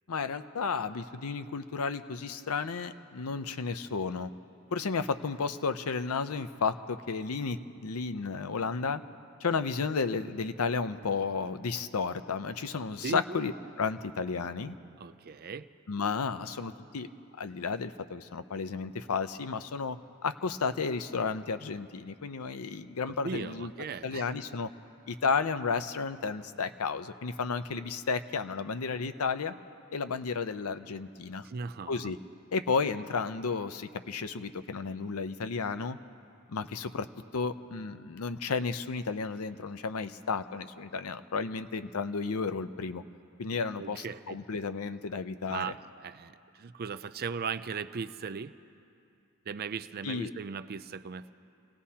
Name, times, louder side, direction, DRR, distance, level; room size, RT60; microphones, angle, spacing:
voice 1, 0.1-4.3 4.7-9.0 9.4-13.5 13.8-14.8 15.9-17.1 17.4-23.7 24.0-24.7 25.1-29.5 29.9-31.4 31.9-32.2 32.5-36.0 36.5-37.1 37.3-43.0 43.4-45.7 50.0-50.3, left 5 dB, 75° left, 11 dB, 0.6 m, -32 dB
voice 2, 13.0-13.4 15.0-15.7 23.1-24.3 31.4-32.1 43.8-44.4 45.5-48.5 49.5-51.3, right 5 dB, 45° right, 12 dB, 0.4 m, -38 dB
29.0 x 17.5 x 2.8 m, 2.6 s
head